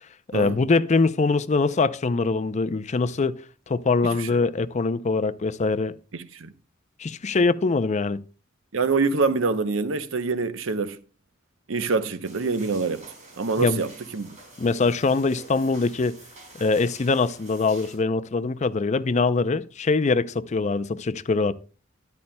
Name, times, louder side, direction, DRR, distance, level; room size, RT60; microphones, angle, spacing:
voice 1, 0.3-3.4 3.7-5.9 7.0-8.2 13.6-13.8 14.6-16.2 16.6-21.5, left 3 dB, 35° left, 0.5 m, -23 dB
voice 2, 6.1-6.5 8.7-11.0 11.7-13.0 13.4-14.4, right 4 dB, 85° right, 0.8 m, -25 dB
sound 1, 12.2-18.0, right 2 dB, 40° right, 4.5 m, -47 dB
13.0 x 11.0 x 2.2 m
head